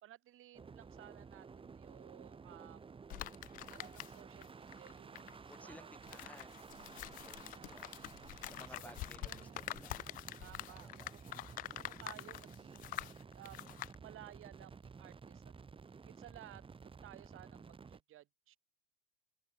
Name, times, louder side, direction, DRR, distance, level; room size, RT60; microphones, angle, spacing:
voice 1, 0.0-2.8 3.7-5.4 5.6-5.9 6.7-7.8 8.5-9.9 10.4-13.7 14.0-15.5 16.0-18.6, right 14 dB, 35° right, 2.6 m, -58 dB
sound 1, 0.5-18.0, right 5 dB, 15° right, 1.7 m, -53 dB
sound 2, 3.1-4.5 4.7-13.9, left 17 dB, 25° left, 0.4 m, -46 dB
sound 3, 3.8-8.2 8.4-8.8 9.5-9.6, right 3 dB, 90° right, 6.7 m, -70 dB
voice 2, 5.5-7.9 8.5-10.0 10.7-11.1, left 1 dB, 5° left, 2.4 m, -58 dB
figure-of-eight pair, 80°, 35 cm